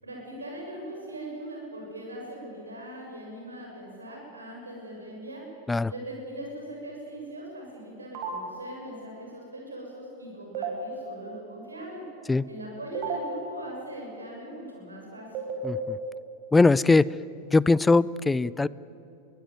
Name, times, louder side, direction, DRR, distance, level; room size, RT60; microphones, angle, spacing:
voice 1, 0.0-5.4 5.9-12.0 12.5-15.3, right 1 dB, 75° right, -1 dB, 7.0 m, -40 dB
sound 1, 8.1-8.3 10.5-10.7 12.9-13.2 15.3-15.7, right 9 dB, 40° right, 5.0 m, -31 dB
voice 2, 15.6-16.0 16.5-17.1 17.5-18.7, left 3 dB, 10° left, 21 dB, 0.4 m, -21 dB
23.0 x 17.0 x 9.4 m, 2.9 s
figure-of-eight pair, 90°, 0 cm